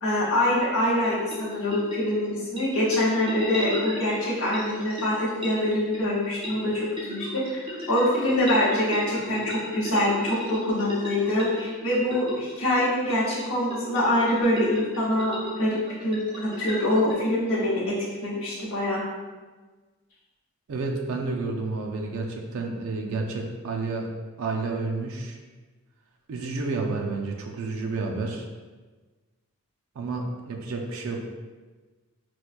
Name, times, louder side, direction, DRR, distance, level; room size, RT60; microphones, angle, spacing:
voice 1, 0.0-7.6 7.9-19.0, left 1 dB, 70° left, -7 dB, 0.9 m, -25 dB
sound 1, 0.9-17.1, equal, 20° right, 0.7 m, -37 dB
voice 2, 20.7-24.1 24.4-25.4 26.3-28.5 30.0-31.2, right 3 dB, 70° right, 1 dB, 0.4 m, -30 dB
4.3 x 2.2 x 2.4 m, 1.3 s
head